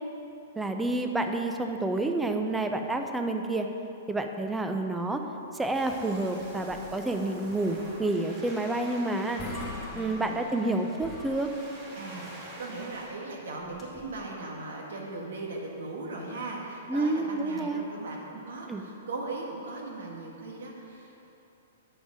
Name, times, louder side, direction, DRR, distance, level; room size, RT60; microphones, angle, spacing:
voice 1, 0.6-3.7 4.1-5.2 5.5-9.4 9.9-11.5 16.9-17.8 18.7-18.8, right 2 dB, 10° right, 5 dB, 0.5 m, -29 dB
Waves surf, 5.7-13.1, right 1 dB, 35° right, 1.6 m, -45 dB
sound 1, 8.9-9.0 9.2-10.7 11.0-12.0 13.6-14.2, left 3 dB, 15° left, 1.3 m, -42 dB
voice 2, 9.9-10.5 12.0-21.3, right 2 dB, 75° right, -1 dB, 1.5 m, -38 dB
8.6 x 5.1 x 4.9 m, 2.9 s
hypercardioid pair, 125°, 0 cm